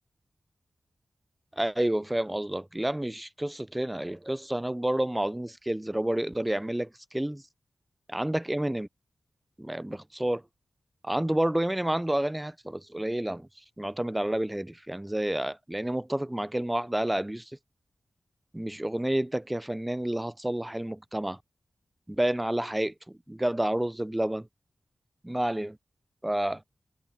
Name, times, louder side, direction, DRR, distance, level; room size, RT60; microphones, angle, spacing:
voice 1, 1.5-7.4 8.1-8.9 9.6-10.4 11.0-17.6 18.5-21.4 22.1-24.5 25.2-25.8 26.2-26.6, right 1 dB, 10° right, 0.4 m, -29 dB
wide cardioid pair, 105°, 0 cm